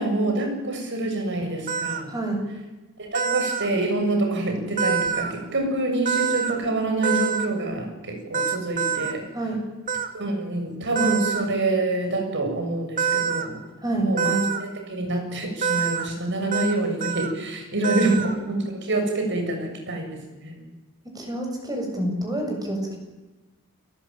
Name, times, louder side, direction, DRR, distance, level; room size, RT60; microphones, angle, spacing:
voice 1, 0.0-2.1 3.0-9.2 10.1-13.6 14.0-20.7, right 2 dB, 55° right, 4 dB, 7.5 m, -26 dB
sound 1, 1.7-2.0 3.1-3.7 4.8-5.3 6.0-6.6 7.0-7.5 8.3-9.1 9.9-10.1 10.9-11.4 13.0-13.5 14.2-14.6 15.6-16.1 16.5-16.7 17.0-17.3 17.8-18.3, right 7 dB, 40° right, 2.3 m, -25 dB
voice 2, 2.1-2.4 9.3-9.6 13.8-14.1 17.9-18.7 21.1-23.0, right 1 dB, 20° right, 2 dB, 7.5 m, -27 dB
29.0 x 19.0 x 9.0 m, 1.1 s
head